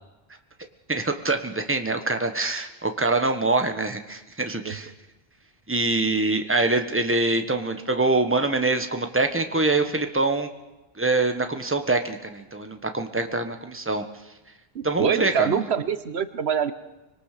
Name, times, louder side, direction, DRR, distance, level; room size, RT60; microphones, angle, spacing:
voice 1, 0.9-4.9 5.7-10.5 11.0-14.0 14.8-15.6, right 2 dB, 10° right, 6 dB, 1.4 m, -24 dB
voice 2, 14.7-16.7, right 7 dB, 85° right, 13 dB, 1.3 m, -24 dB
25.0 x 22.0 x 6.8 m, 1.1 s
omnidirectional pair, 1.0 m